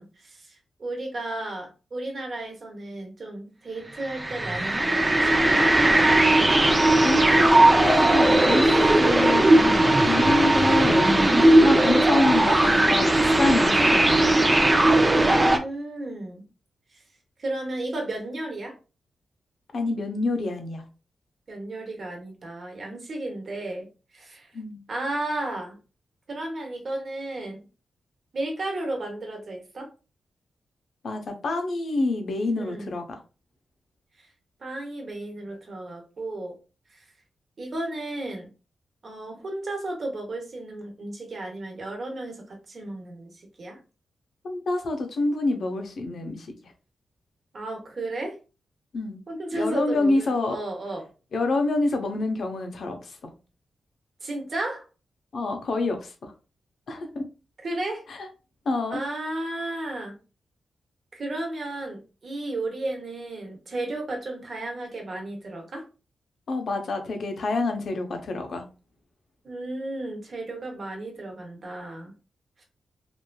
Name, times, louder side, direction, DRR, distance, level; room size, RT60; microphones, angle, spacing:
voice 1, 0.0-5.6 11.4-11.7 15.1-16.4 16.9-17.0 17.4-18.7 21.5-23.9 24.1-24.5 24.9-25.8 26.3-27.6 28.3-29.9 32.6-32.9 34.2-34.3 34.6-36.5 37.6-38.5 39.0-43.8 47.5-48.4 49.3-51.1 54.2-54.9 57.6-58.0 58.9-60.2 61.1-65.8 69.4-72.1 72.6-72.7, right 2 dB, 50° right, 2 dB, 1.0 m, -33 dB
sound 1, 4.0-15.6, right 1 dB, 20° right, 0.4 m, -18 dB
voice 2, 7.0-9.6 10.0-11.1 11.6-14.3 19.7-20.8 24.5-24.8 31.0-33.0 44.4-46.7 48.9-49.2 49.5-50.6 51.3-53.2 55.3-56.3 56.9-57.2 58.1-58.3 58.7-59.0 66.5-68.6, left 2 dB, 65° left, 4 dB, 0.7 m, -27 dB
3.0 x 2.5 x 2.2 m, 0.33 s
wide cardioid pair, 110°, 0 cm